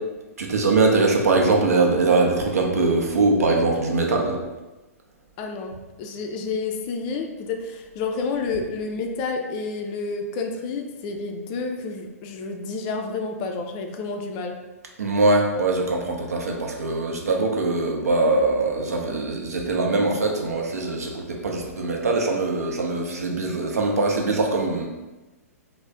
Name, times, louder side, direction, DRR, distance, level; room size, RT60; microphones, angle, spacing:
voice 1, 0.4-4.4 15.0-24.9, right 3 dB, 75° right, 1 dB, 0.6 m, -22 dB
voice 2, 5.4-14.5, left 4 dB, 30° left, 3 dB, 0.3 m, -30 dB
3.1 x 2.0 x 3.4 m, 1.1 s
figure-of-eight pair, 120°, 8 cm